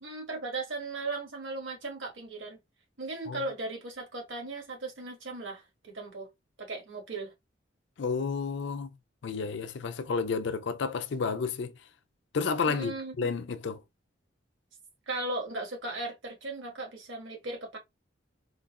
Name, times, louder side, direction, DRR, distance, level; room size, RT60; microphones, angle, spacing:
voice 1, 0.0-2.6 3.0-6.3 6.6-7.3 12.7-13.3 15.1-17.8, right 2 dB, 80° right, 1.6 m, -37 dB
voice 2, 8.0-8.9 9.2-11.7 12.3-13.8, left 5 dB, 65° left, 0.4 m, -31 dB
3.8 x 2.4 x 2.3 m
head